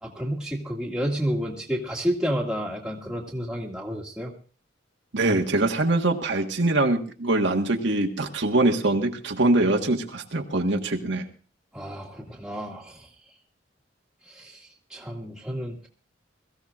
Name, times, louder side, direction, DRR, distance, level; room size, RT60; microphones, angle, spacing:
voice 1, 0.0-4.3 11.7-13.1 14.3-14.6 14.9-15.9, equal, 5° right, -1 dB, 1.9 m, -30 dB
voice 2, 5.1-11.3, right 2 dB, 75° right, 3 dB, 1.5 m, -23 dB
22.0 x 15.0 x 2.5 m, 0.39 s
head